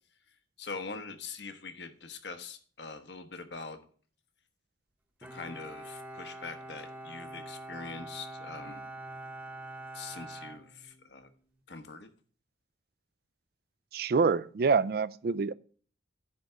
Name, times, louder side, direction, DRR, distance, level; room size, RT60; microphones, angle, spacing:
voice 1, 0.6-3.8 5.3-8.9 9.9-11.3 11.7-12.1, left 4 dB, 65° left, 1.1 m, -43 dB
Bowed string instrument, 5.2-11.4, right 2 dB, 10° right, 0.8 m, -45 dB
voice 2, 13.9-15.5, right 5 dB, 50° right, 0.3 m, -26 dB
10.0 x 3.5 x 6.6 m
head